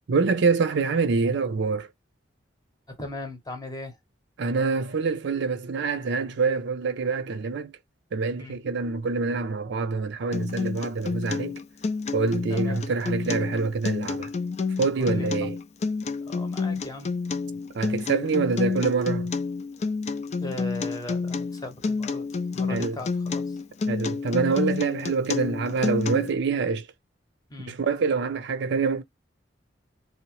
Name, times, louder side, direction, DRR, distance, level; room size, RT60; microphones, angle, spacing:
voice 1, 0.1-1.9 4.4-7.7 8.1-11.6 12.1-14.3 14.8-15.6 17.7-19.3 22.7-23.0 23.9-26.8 27.7-29.0, right 4 dB, 65° right, 0.5 m, -26 dB
voice 2, 2.9-4.0 8.4-8.6 12.5-12.9 15.0-15.5 16.2-17.1 20.4-23.6 27.5-27.8, left 1 dB, 20° left, 0.8 m, -38 dB
Acoustic guitar, 10.3-26.3, left 4 dB, 35° left, 0.3 m, -29 dB
2.8 x 2.0 x 2.9 m
head